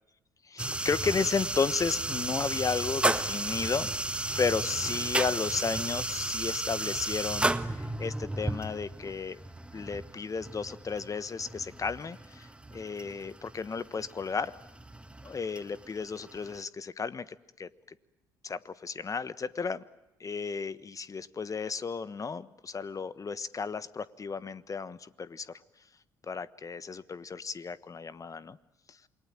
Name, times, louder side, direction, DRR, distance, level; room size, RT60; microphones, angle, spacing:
voice 1, 0.4-9.4 9.7-14.5 15.2-17.3 17.6-17.7 18.4-19.8 20.2-25.6 26.2-28.6 28.9-29.0, left 5 dB, 35° left, 16 dB, 1.3 m, -33 dB
sound 1, 0.6-16.6, right 2 dB, 10° right, 1.5 m, -34 dB
28.0 x 22.0 x 9.0 m, 0.94 s
hypercardioid pair, 55°, 10 cm